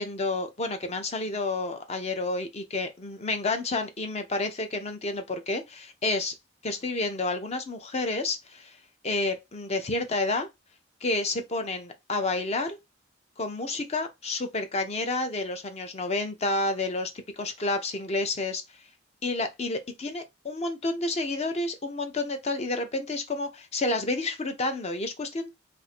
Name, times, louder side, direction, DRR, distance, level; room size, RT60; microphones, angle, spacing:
voice 1, 0.0-6.3 6.6-8.8 9.0-10.5 11.0-12.8 13.4-18.6 19.2-25.5, left 2 dB, 35° left, 0.5 m, -30 dB
2.6 x 2.5 x 4.2 m
head